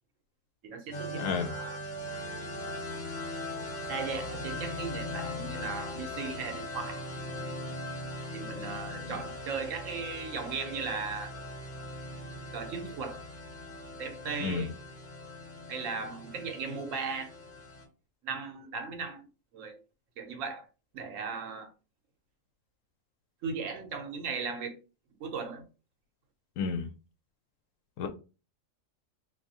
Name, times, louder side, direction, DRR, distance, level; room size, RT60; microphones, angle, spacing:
voice 1, 0.6-1.8 3.9-7.0 8.3-11.3 12.5-13.2 14.0-14.7 15.7-17.3 18.2-19.3 19.5-19.8 20.2-20.7 20.9-21.7 23.4-24.8 25.2-25.7, right 5 dB, 80° right, 1.1 m, -37 dB
sound 1, 0.9-17.8, left 1 dB, 40° left, 1.1 m, -40 dB
voice 2, 1.2-1.5 14.4-14.7 26.6-26.8 28.0-28.1, left 5 dB, 80° left, 1.0 m, -30 dB
3.4 x 2.6 x 2.7 m
omnidirectional pair, 1.3 m